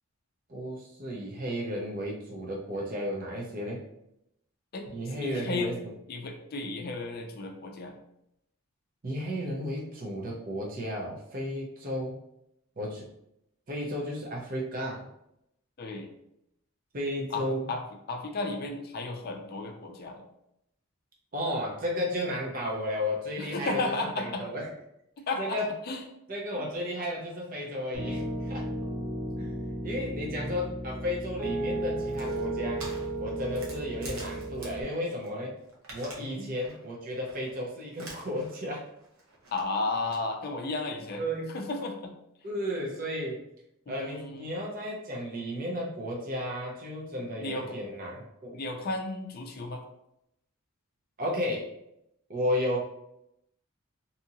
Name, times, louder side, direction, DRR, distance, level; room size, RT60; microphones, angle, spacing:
voice 1, 0.5-3.8 4.9-5.8 9.0-12.2 12.8-13.1 13.7-15.0 16.9-17.7 21.3-23.8 24.2-24.7 25.4-25.7 26.3-28.7 29.4-29.5 29.8-32.8 33.2-35.5 35.9-38.8 41.2-41.5 42.4-43.4 43.9-48.6 51.2-51.7 52.3-52.8, left 1 dB, 40° right, -2 dB, 0.6 m, -33 dB
voice 2, 5.2-5.7 6.1-7.9 15.8-16.2 17.3-17.8 18.1-20.2 23.4-24.5 25.3-25.6 25.8-26.0 29.4-29.5 30.0-30.6 36.2-36.4 39.5-41.2 41.5-42.2 43.9-44.5 47.2-47.8 48.5-49.8, left 2 dB, 45° left, 3 dB, 0.4 m, -34 dB
Piano, 27.9-34.8, right 1 dB, 25° right, 1.1 m, -34 dB
sound 1, 32.0-35.3 35.6-36.3 36.6-36.9 37.3-37.5 37.9-38.6 38.9-40.2, right 2 dB, 70° right, 0.8 m, -46 dB
2.7 x 2.5 x 2.7 m, 0.80 s
head